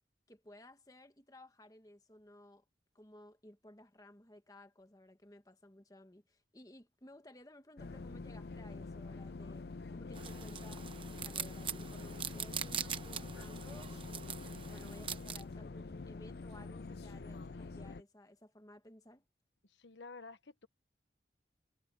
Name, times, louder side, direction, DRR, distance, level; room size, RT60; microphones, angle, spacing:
voice 1, 0.3-2.6 2.9-14.3 14.7-19.2, left 1 dB, 20° left, 1.3 m, -57 dB
sound 1, 7.8-18.0, left 3 dB, 65° left, 0.5 m, -46 dB
sound 2, 10.1-15.4, right 8 dB, 30° right, 0.9 m, -43 dB
voice 2, 19.6-20.7, left 4 dB, 85° left, 1.2 m, -51 dB
head